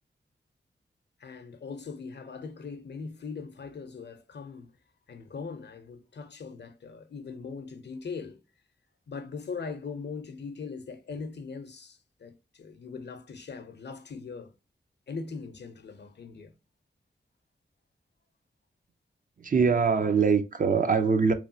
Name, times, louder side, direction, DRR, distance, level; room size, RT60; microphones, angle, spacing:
voice 1, 1.2-4.7 5.1-8.4 9.1-14.5 15.1-16.5, left 5 dB, 65° left, 0.6 m, -40 dB
voice 2, 19.4-21.3, right 5 dB, 45° right, 0.5 m, -23 dB
3.1 x 2.3 x 2.6 m
wide cardioid pair, 65°, 19 cm